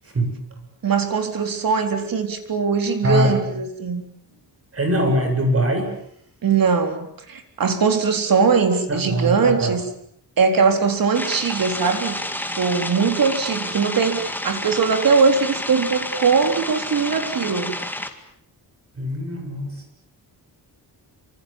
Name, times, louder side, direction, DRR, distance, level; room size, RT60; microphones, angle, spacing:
voice 1, 0.8-4.0 6.4-9.8 10.4-12.2 12.6-17.8, right 5 dB, 55° right, 6 dB, 4.1 m, -20 dB
voice 2, 3.0-3.4 4.7-5.9 8.9-9.7 19.0-19.8, equal, 35° right, 4 dB, 7.3 m, -22 dB
sound 1, 11.1-18.1, left 1 dB, 5° left, 2.1 m, -30 dB
27.0 x 26.0 x 7.3 m, 0.67 s
wide cardioid pair, 175°, 40 cm